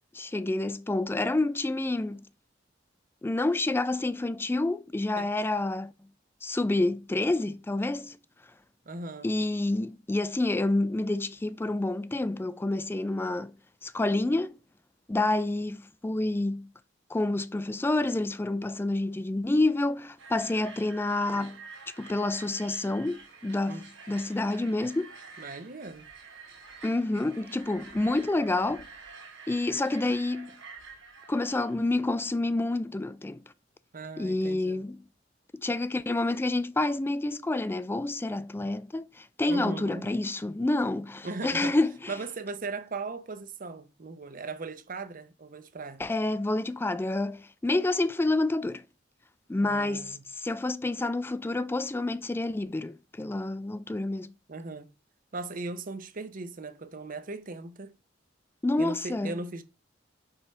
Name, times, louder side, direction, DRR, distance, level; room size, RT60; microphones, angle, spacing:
voice 1, 0.1-2.2 3.2-5.9 6.4-8.2 9.2-13.5 13.8-14.6 15.1-16.7 17.1-21.6 22.0-25.1 26.8-28.9 29.5-30.6 31.3-33.4 34.2-35.0 35.6-42.1 46.0-48.8 49.5-54.3 58.6-59.3, left 2 dB, 10° left, 0.3 m, -28 dB
voice 2, 8.9-9.3 23.7-23.9 25.4-26.1 33.9-34.8 39.5-40.1 41.2-41.8 42.1-46.0 49.6-50.2 54.5-54.9 55.3-57.9 58.8-59.6, right 3 dB, 45° right, 0.7 m, -38 dB
sound 1, 20.2-31.9, right 4 dB, 85° right, 2.7 m, -48 dB
5.6 x 3.3 x 5.5 m
head